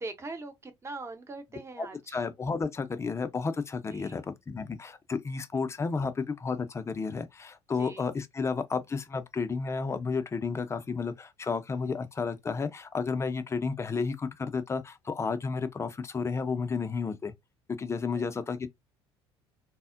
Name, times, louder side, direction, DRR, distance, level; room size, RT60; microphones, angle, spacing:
voice 1, 0.0-2.2 3.9-4.2 5.5-5.6 7.7-8.1 18.1-18.3, right 3 dB, 20° right, 0.7 m, -42 dB
voice 2, 2.1-17.3 17.8-18.7, left 5 dB, 20° left, 0.5 m, -32 dB
3.4 x 2.0 x 2.4 m
figure-of-eight pair, 55°, 14 cm